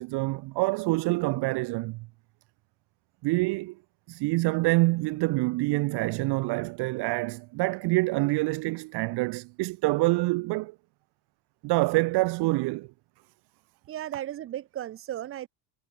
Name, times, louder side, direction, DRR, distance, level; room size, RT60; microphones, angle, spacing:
voice 1, 0.0-2.1 3.2-3.8 4.1-10.7 11.6-12.9, right 23 dB, 55° right, 0.9 m, -26 dB
voice 2, 13.9-15.5, right 12 dB, 30° right, 0.7 m, -35 dB
cardioid pair, 180°, 46 cm